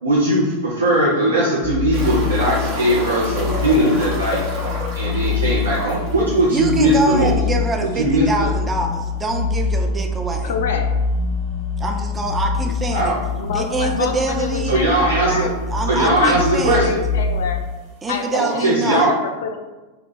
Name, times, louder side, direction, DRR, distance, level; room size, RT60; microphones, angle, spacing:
voice 1, 0.0-4.4 4.9-7.3 8.0-8.5 12.9-13.2 14.7-15.5 15.9-16.9 18.3-19.1, right 1 dB, 75° right, -6 dB, 0.6 m, -19 dB
sound 1, 1.6-17.6, left 4 dB, 20° left, 0.7 m, -25 dB
sound 2, 1.9-7.3 7.6-7.7 8.0-8.1 10.9-11.0 12.7-12.8 13.6-13.7 13.9-14.0 14.9-15.0 15.2-15.8 16.7-16.8, right 1 dB, 50° right, 0.8 m, -30 dB
voice 2, 6.5-10.5 11.8-13.2 13.5-14.8 15.3-15.4 15.7-16.9 18.0-19.1, right 2 dB, 15° right, 3 dB, 0.4 m, -25 dB
voice 3, 10.4-10.9 12.7-12.8 13.3-15.5 16.0-17.6 18.1-19.6, left 5 dB, 60° left, 4 dB, 0.3 m, -27 dB
2.8 x 2.3 x 3.9 m, 1.2 s
figure-of-eight pair, 90°, 0 cm